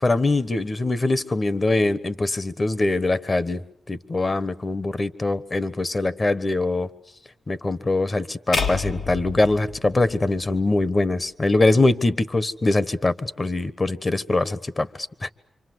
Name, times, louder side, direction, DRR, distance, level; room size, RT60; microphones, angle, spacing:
voice 1, 0.0-6.9 7.5-15.3, left 2 dB, 35° left, 1.2 m, -23 dB
sound 1, 8.5-10.8, left 4 dB, 75° left, 2.2 m, -29 dB
27.0 x 25.0 x 7.9 m
cardioid pair, 60°, 0 cm